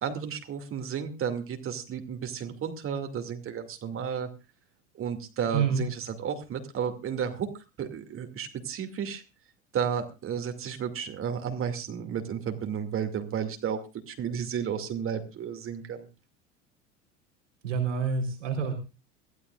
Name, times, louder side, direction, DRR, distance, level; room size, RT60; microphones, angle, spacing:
voice 1, 0.0-4.3 4.9-7.5 7.8-9.2 9.7-13.8 14.1-16.1, right 7 dB, 35° right, 6 dB, 2.5 m, -32 dB
voice 2, 5.5-5.8 17.6-18.7, right 6 dB, 70° right, 2 dB, 4.0 m, -27 dB
23.0 x 15.5 x 2.5 m, 0.30 s
figure-of-eight pair, 75°, 38 cm